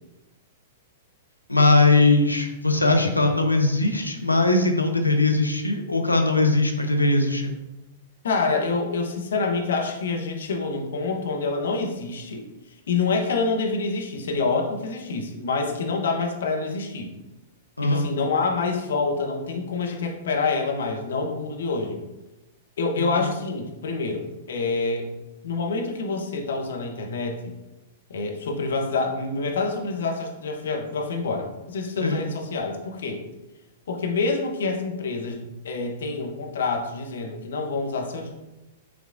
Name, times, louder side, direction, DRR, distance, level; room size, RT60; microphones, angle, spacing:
voice 1, 1.5-7.5 17.8-18.1 23.0-23.3 32.0-32.2, left 2 dB, 90° left, 4 dB, 0.7 m, -20 dB
voice 2, 8.2-12.5 12.9-17.1 17.8-22.0 22.8-25.1 25.4-27.5 28.1-33.2 33.9-38.3, left 4 dB, 65° left, 2 dB, 0.9 m, -27 dB
6.0 x 3.5 x 2.5 m, 1.0 s
figure-of-eight pair, 105°, 0 cm